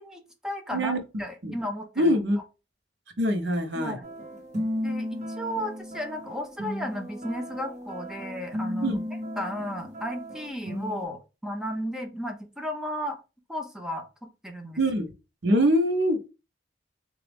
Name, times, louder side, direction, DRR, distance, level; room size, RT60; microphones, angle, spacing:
voice 1, 0.0-0.9 1.2-2.2 3.7-4.1 4.8-9.0 9.4-13.2 13.5-14.1 14.4-14.8, equal, 5° right, 0.6 m, -34 dB
voice 2, 2.0-2.4 3.2-4.0 8.8-9.0 14.8-15.1 15.4-16.3, equal, 75° right, 0.8 m, -23 dB
sound 1, 4.0-11.1, equal, 45° right, 1.2 m, -35 dB
3.9 x 2.4 x 3.4 m
head